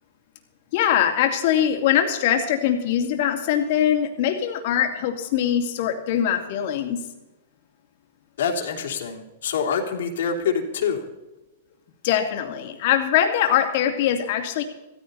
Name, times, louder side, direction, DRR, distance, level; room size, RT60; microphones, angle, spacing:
voice 1, 0.7-7.0 12.0-14.6, left 10 dB, 55° left, 4 dB, 2.6 m, -22 dB
voice 2, 8.4-11.0, left 6 dB, 75° left, 1 dB, 3.2 m, -26 dB
16.0 x 15.0 x 4.2 m, 1.0 s
hypercardioid pair, 135°, 0 cm